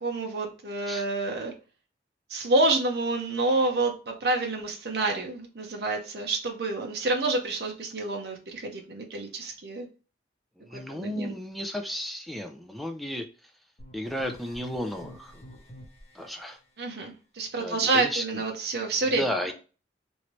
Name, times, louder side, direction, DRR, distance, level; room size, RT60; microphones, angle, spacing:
voice 1, 0.0-1.5 2.3-9.9 10.9-11.3 16.8-19.5, right 2 dB, 60° right, 1 dB, 0.6 m, -28 dB
voice 2, 10.6-13.5 13.9-15.4 16.1-16.6 17.6-18.4 19.0-19.5, equal, ahead, 4 dB, 0.3 m, -34 dB
sound 1, 13.8-16.5, equal, 35° left, 0.9 m, -48 dB
3.2 x 2.6 x 2.9 m, 0.34 s
head